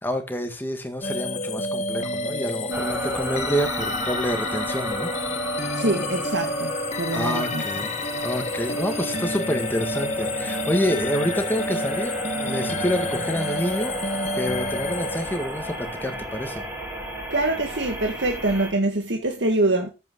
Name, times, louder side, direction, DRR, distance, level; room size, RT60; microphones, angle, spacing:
voice 1, 0.0-5.1 7.1-7.9 8.2-16.6, equal, 10° left, 1.8 m, -28 dB
sound 1, 1.0-15.8, left 2 dB, 40° left, 1.2 m, -29 dB
sound 2, 2.7-18.7, right 1 dB, 10° right, 4.1 m, -34 dB
voice 2, 5.8-7.6 17.3-19.9, right 2 dB, 75° right, 1.8 m, -24 dB
13.5 x 8.5 x 3.8 m
head